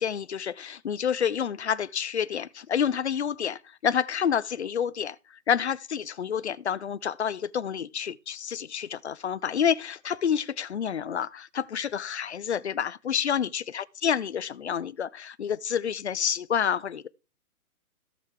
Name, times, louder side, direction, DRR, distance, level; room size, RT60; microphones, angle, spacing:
voice 1, 0.0-17.1, left 8 dB, 50° left, 0.5 m, -29 dB
16.5 x 6.6 x 3.6 m
hypercardioid pair, 180°, 43 cm